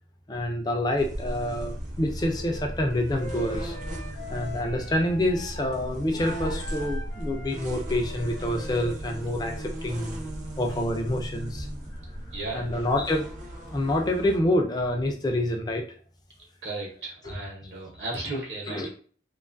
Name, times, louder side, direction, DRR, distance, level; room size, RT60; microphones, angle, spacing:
voice 1, 0.3-3.8 4.3-10.3 10.6-11.7 12.5-13.3 13.7-15.9 18.7-18.9, left 1 dB, 20° left, 3 dB, 0.4 m, -27 dB
sound 1, 1.0-14.4, right 1 dB, 40° right, 0.5 m, -36 dB
Wind instrument woodwind instrument, 2.2-5.8 6.1-9.9, equal, 75° left, 0.7 m, -44 dB
voice 2, 12.3-12.8 16.6-18.9, right 2 dB, 70° right, -2 dB, 0.8 m, -35 dB
2.5 x 2.3 x 2.5 m, 0.44 s
head